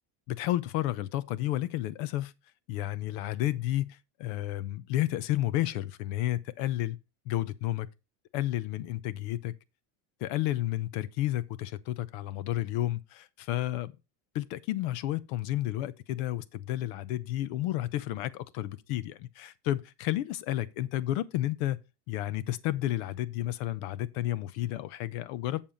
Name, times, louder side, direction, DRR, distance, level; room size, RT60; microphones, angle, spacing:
voice 1, 0.3-2.3 2.7-7.0 7.3-7.9 8.3-9.5 10.2-13.9 14.3-21.8 22.1-25.6, left 14 dB, 60° left, 0.8 m, -31 dB
7.4 x 6.9 x 3.9 m
supercardioid pair, 150°, 42 cm